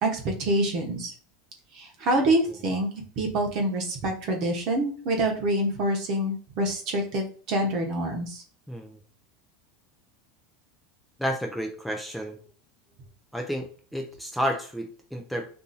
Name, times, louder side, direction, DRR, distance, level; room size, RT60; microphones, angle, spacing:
voice 1, 0.0-1.1 1.7-2.9 3.2-8.4, right 1 dB, 50° right, 2 dB, 0.9 m, -26 dB
voice 2, 8.7-9.0 11.2-12.4 13.3-15.5, equal, ahead, 2 dB, 0.4 m, -31 dB
2.6 x 2.6 x 4.0 m, 0.43 s
supercardioid pair, 130°, 0 cm